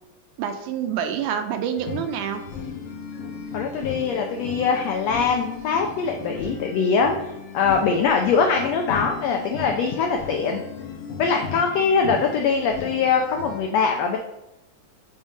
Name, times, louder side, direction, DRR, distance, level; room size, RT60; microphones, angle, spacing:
voice 1, 0.4-2.4, right 8 dB, 80° right, 7 dB, 2.0 m, -27 dB
sound 1, 1.8-13.6, left 5 dB, 65° left, 1.7 m, -36 dB
voice 2, 3.5-10.6 11.2-14.2, left 5 dB, 85° left, 3 dB, 1.4 m, -22 dB
6.3 x 3.6 x 5.4 m, 0.92 s
omnidirectional pair, 3.7 m